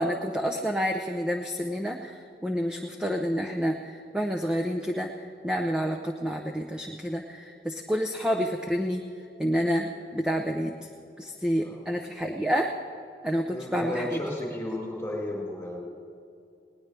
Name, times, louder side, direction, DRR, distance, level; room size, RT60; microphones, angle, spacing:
voice 1, 0.0-9.0 9.4-10.9 11.2-12.7 13.2-14.1, equal, 5° right, 0 dB, 0.7 m, -29 dB
voice 2, 13.5-15.8, left 1 dB, 15° left, -4 dB, 4.7 m, -33 dB
20.5 x 19.0 x 3.4 m, 2.5 s
head